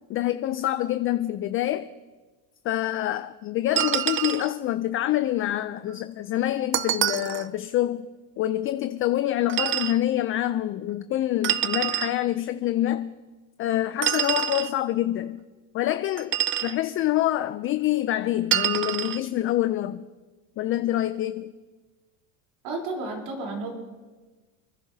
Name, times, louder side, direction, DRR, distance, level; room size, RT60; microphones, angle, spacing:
voice 1, 0.1-1.9 2.6-8.1 8.4-13.2 13.6-15.4 15.7-16.4 16.6-20.1 20.6-21.5, left 13 dB, 35° left, 0.4 m, -26 dB
sound 1, 3.8-4.5 6.7-7.5 9.5-10.0 11.4-12.1 14.0-14.7 16.2-16.8 18.5-19.2, right 11 dB, 30° right, 0.5 m, -26 dB
voice 2, 22.6-23.7, right 3 dB, 65° right, 3.7 m, -32 dB
28.5 x 10.5 x 2.7 m
supercardioid pair, 115°, 40 cm